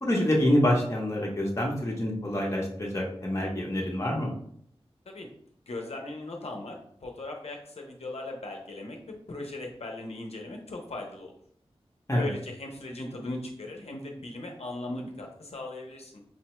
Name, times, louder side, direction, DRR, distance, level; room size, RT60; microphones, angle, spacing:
voice 1, 0.0-4.3 12.1-12.3, left 1 dB, 25° left, -2 dB, 0.8 m, -26 dB
voice 2, 5.7-9.0 9.3-11.3 12.2-16.2, left 2 dB, 75° left, 1 dB, 0.6 m, -38 dB
4.8 x 2.1 x 2.9 m, 0.65 s
wide cardioid pair, 65°, 11 cm